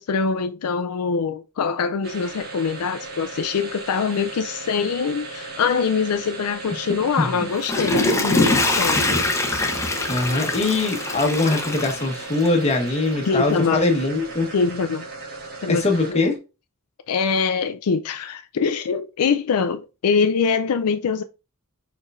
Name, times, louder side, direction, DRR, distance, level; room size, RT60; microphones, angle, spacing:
voice 1, 0.0-9.0 13.2-13.8 14.5-15.1 15.6-16.2 17.1-21.2, left 5 dB, 85° left, 0.4 m, -23 dB
sound 1, 2.0-16.4, right 3 dB, 45° right, 1.5 m, -36 dB
Water / Toilet flush, 7.4-12.7 13.1-13.2, left 2 dB, 15° left, 0.8 m, -23 dB
voice 2, 10.1-14.5 15.7-16.4, left 2 dB, 30° left, 1.2 m, -22 dB
4.6 x 4.5 x 2.4 m
head